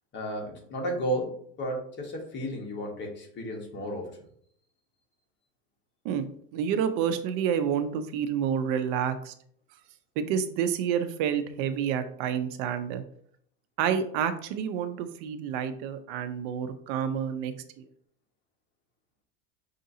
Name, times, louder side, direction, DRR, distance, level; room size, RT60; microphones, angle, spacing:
voice 1, 0.1-4.2, equal, 35° left, 1 dB, 1.2 m, -33 dB
voice 2, 6.5-9.3 10.2-13.0 13.8-17.5, right 8 dB, 65° right, 10 dB, 0.5 m, -29 dB
5.6 x 2.6 x 2.7 m, 0.64 s
supercardioid pair, 130°, 33 cm